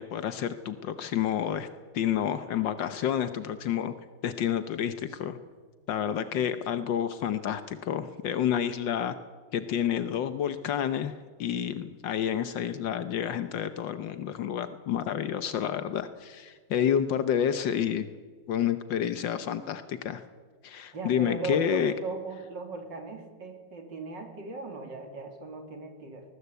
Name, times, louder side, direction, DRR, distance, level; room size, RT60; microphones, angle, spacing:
voice 1, 0.0-1.7 1.9-3.9 4.2-5.4 5.9-9.2 9.5-18.1 18.5-20.2 20.6-21.9, left 9 dB, 80° left, 11 dB, 1.6 m, -29 dB
voice 2, 6.1-6.6 20.9-26.2, right 3 dB, 75° right, 4 dB, 3.8 m, -38 dB
21.5 x 19.5 x 8.2 m, 1.5 s
omnidirectional pair, 2.0 m